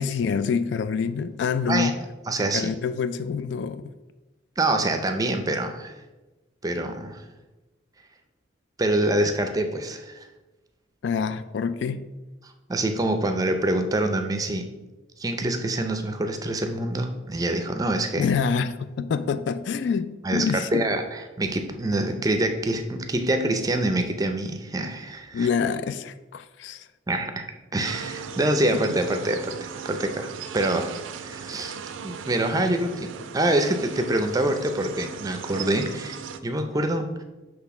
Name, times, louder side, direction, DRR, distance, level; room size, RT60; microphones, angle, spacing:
voice 1, 0.0-2.0 2.5-3.8 11.0-12.1 18.2-20.8 25.3-26.9 28.7-28.8, left 6 dB, 60° left, 0.3 m, -26 dB
voice 2, 2.3-2.7 4.6-5.9 6.6-7.2 8.8-10.3 12.4-14.7 15.2-18.3 20.2-25.5 27.1-27.5 27.7-31.0 31.2-37.2, right 1 dB, 20° right, 0.5 m, -26 dB
sound 1, 27.8-36.4, right 6 dB, 80° right, 0.4 m, -38 dB
6.0 x 3.2 x 5.8 m
head